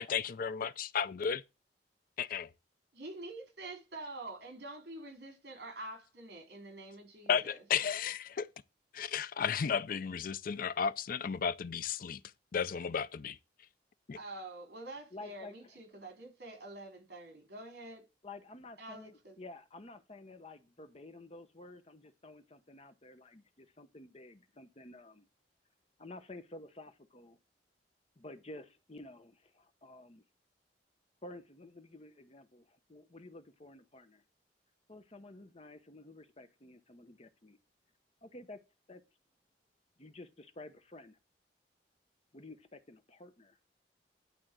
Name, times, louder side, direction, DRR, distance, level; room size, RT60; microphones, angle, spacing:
voice 1, 0.0-1.4 2.2-2.5 7.3-8.5 8.9-12.2 12.5-13.4 14.1-14.2, left 7 dB, 50° left, 0.4 m, -33 dB
voice 2, 2.9-7.6 14.1-18.0 18.8-19.4, right 2 dB, 65° right, 3.7 m, -47 dB
voice 3, 15.1-15.5 18.2-25.3 26.0-27.4 28.2-30.2 31.2-34.2 34.9-37.6 38.2-38.6 38.9-39.0 40.0-41.2 42.3-43.6, left 2 dB, 35° left, 1.0 m, -51 dB
11.0 x 3.7 x 7.6 m
head